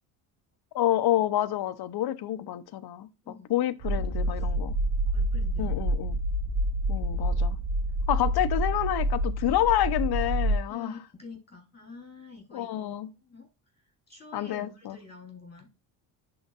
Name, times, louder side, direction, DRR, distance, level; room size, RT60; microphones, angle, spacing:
voice 1, 0.7-3.1 3.5-4.7 5.6-6.2 6.9-7.6 8.1-11.0 12.5-13.1 14.3-15.0, left 12 dB, 55° left, 0.7 m, -28 dB
sound 1, 3.8-10.6, right 1 dB, 65° right, 1.2 m, -27 dB
voice 2, 3.9-4.6 5.1-5.9 10.7-13.5 14.1-15.7, left 4 dB, 20° left, 3.6 m, -47 dB
11.0 x 3.9 x 2.4 m
supercardioid pair, 75°, 44 cm